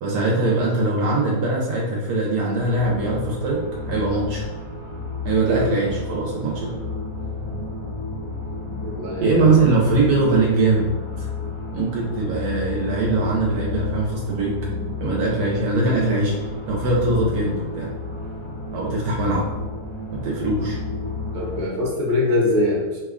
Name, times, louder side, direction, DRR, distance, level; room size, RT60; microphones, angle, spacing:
voice 1, 0.0-4.4 5.2-6.8 9.2-10.9 11.2-11.3 11.7-14.6 15.0-16.3 16.7-17.9 18.7-19.5 20.1-20.8, right 2 dB, 80° right, -3 dB, 1.1 m, -21 dB
sound 1, 2.6-21.6, left 3 dB, 25° left, 0.8 m, -31 dB
voice 2, 8.8-9.6 21.3-23.0, left 2 dB, 55° right, -3 dB, 1.1 m, -23 dB
2.9 x 2.2 x 3.5 m, 1.2 s
omnidirectional pair, 1.6 m